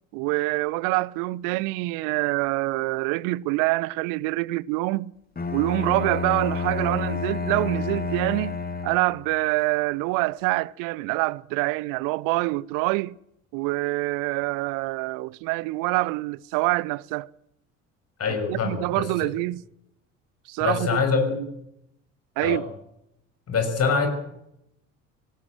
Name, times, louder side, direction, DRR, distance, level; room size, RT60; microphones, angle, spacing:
voice 1, 0.1-5.1 5.5-8.6 8.8-13.2 13.5-17.3 18.5-19.6 20.5-21.0 22.4-22.6, right 22 dB, 55° right, 0.7 m, -25 dB
Bowed string instrument, 5.4-9.3, left 5 dB, 25° left, 2.5 m, -29 dB
voice 2, 18.2-19.3 20.6-21.4 22.4-22.6 23.5-24.1, left 5 dB, 40° left, 6.4 m, -24 dB
19.5 x 18.0 x 7.8 m
figure-of-eight pair, 60°, 39 cm